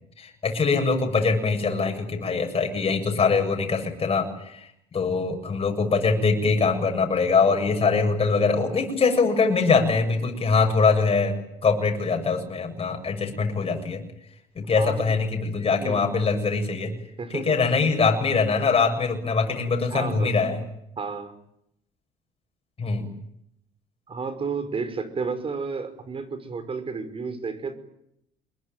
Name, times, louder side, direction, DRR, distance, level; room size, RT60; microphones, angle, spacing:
voice 1, 0.2-11.4 11.6-14.0 14.6-16.9 17.3-20.6 22.8-23.1, left 4 dB, 35° left, 3 dB, 7.6 m, -23 dB
voice 2, 14.8-15.2 15.8-16.2 17.2-17.6 19.9-20.3 21.0-21.4 24.1-27.8, right 4 dB, 35° right, 12 dB, 5.6 m, -32 dB
26.5 x 22.5 x 9.3 m, 0.77 s
cardioid pair, 110°, 17 cm